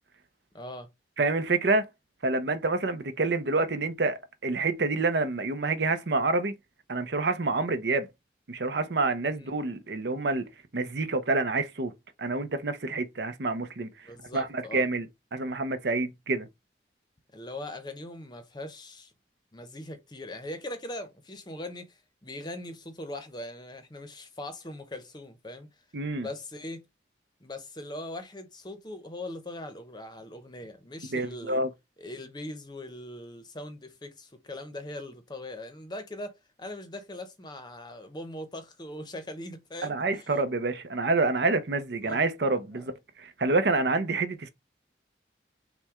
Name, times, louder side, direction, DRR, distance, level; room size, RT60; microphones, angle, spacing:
voice 1, 0.5-0.9 9.3-9.5 14.0-14.9 17.3-19.1 19.5-25.7 26.1-26.8 27.4-31.6 32.0-40.3 41.8-42.2 42.7-42.9, left 1 dB, 25° left, 0.7 m, -41 dB
voice 2, 1.2-1.9 2.2-6.5 6.9-8.1 8.5-10.4 10.7-11.9 12.2-13.9 14.3-15.1 15.3-16.5 25.9-26.3 31.1-31.7 39.8-42.9 43.2-44.5, right 3 dB, 70° right, 0.6 m, -27 dB
5.8 x 2.2 x 3.6 m
head